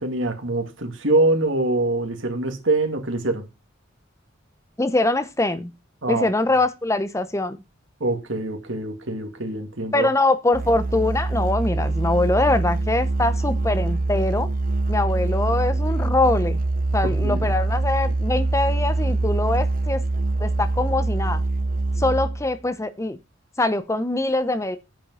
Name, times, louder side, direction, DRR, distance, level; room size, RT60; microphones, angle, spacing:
voice 1, 0.0-3.5 6.0-6.3 8.0-10.1 17.0-17.5, right 2 dB, 70° right, 2.4 m, -24 dB
voice 2, 4.8-5.7 6.1-7.6 9.9-14.5 14.9-16.6 16.9-20.0 20.4-21.4 22.0-23.2 23.6-24.8, left 2 dB, 15° left, 0.7 m, -23 dB
Musical instrument, 10.5-22.6, right 2 dB, 45° right, 0.7 m, -24 dB
9.1 x 7.5 x 5.5 m
head